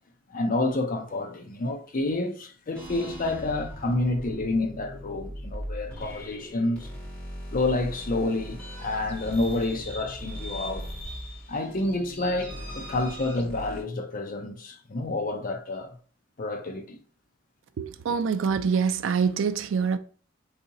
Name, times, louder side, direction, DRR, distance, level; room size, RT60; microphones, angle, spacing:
voice 1, 0.3-6.9 7.5-10.9 11.5-16.0 16.4-17.0, left 2 dB, 45° left, 0.5 m, -29 dB
sound 1, 2.7-13.8, equal, 5° left, 1.4 m, -39 dB
voice 2, 17.8-20.0, right 6 dB, 70° right, 0.4 m, -25 dB
4.2 x 2.7 x 2.6 m
head